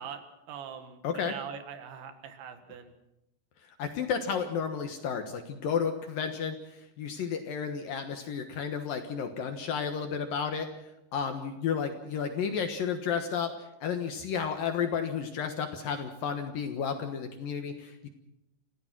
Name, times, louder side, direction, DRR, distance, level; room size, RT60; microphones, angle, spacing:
voice 1, 0.0-2.9, right 7 dB, 75° right, 8 dB, 4.1 m, -42 dB
voice 2, 1.0-1.4 3.6-10.7 11.1-18.1, left 7 dB, 65° left, 6 dB, 2.5 m, -32 dB
27.5 x 16.0 x 6.1 m, 0.89 s
omnidirectional pair, 5.3 m